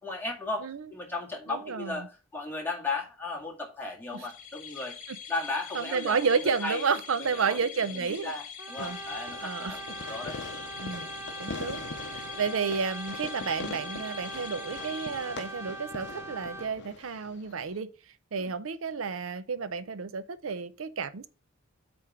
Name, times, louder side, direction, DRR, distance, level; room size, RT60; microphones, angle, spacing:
voice 1, 0.0-5.0 5.3-6.9 7.2-10.4 18.4-18.5, left 3 dB, 10° left, 2.1 m, -36 dB
voice 2, 1.5-2.0 5.7-8.3 8.8-9.0 9.4-9.8 10.8-11.1 11.4-17.9 18.3-21.3, right 5 dB, 80° right, 0.6 m, -31 dB
sound 1, 4.1-15.9, left 7 dB, 45° left, 1.5 m, -44 dB
Brass instrument, 8.6-16.8, right 3 dB, 10° right, 0.6 m, -42 dB
Fireworks, 8.8-17.8, left 4 dB, 60° left, 0.7 m, -43 dB
8.3 x 3.5 x 5.6 m
head